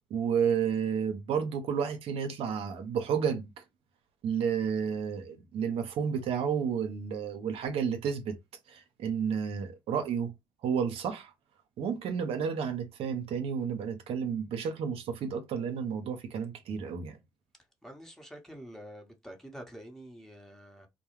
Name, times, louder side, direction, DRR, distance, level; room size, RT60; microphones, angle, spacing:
voice 1, 0.1-3.5 4.2-8.4 8.7-10.3 10.6-11.3 11.8-17.2, right 7 dB, 75° right, 0.6 m, -31 dB
voice 2, 17.8-20.9, equal, 5° left, 0.9 m, -47 dB
2.2 x 2.0 x 3.0 m
supercardioid pair, 65°, 10 cm